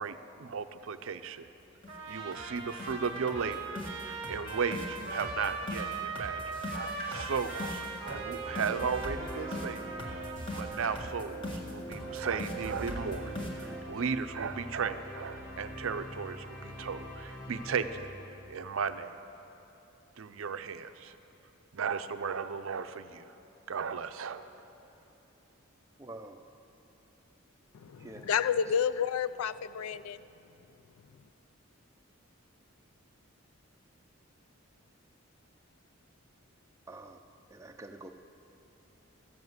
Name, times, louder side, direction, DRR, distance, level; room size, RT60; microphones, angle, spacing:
voice 1, 0.0-1.5 2.1-9.8 10.5-11.4 11.6-18.1 18.5-19.2 20.2-21.2 21.7-23.3 23.7-24.4, right 6 dB, 70° right, 0.5 m, -35 dB
sound 1, 1.4-1.5 1.8-2.0 2.3-2.5 2.8-13.8, equal, 25° left, 1.5 m, -40 dB
Trumpet, 1.9-11.0, right 3 dB, 30° right, 1.1 m, -40 dB
sound 2, 11.9-19.0, equal, 40° left, 1.9 m, -45 dB
voice 2, 26.0-26.4 28.0-28.3 28.7-28.8 36.9-37.2 37.5-38.1, right 2 dB, 15° right, 0.5 m, -47 dB
voice 3, 27.8-30.2, left 7 dB, 85° left, 0.4 m, -30 dB
13.5 x 7.3 x 8.0 m
head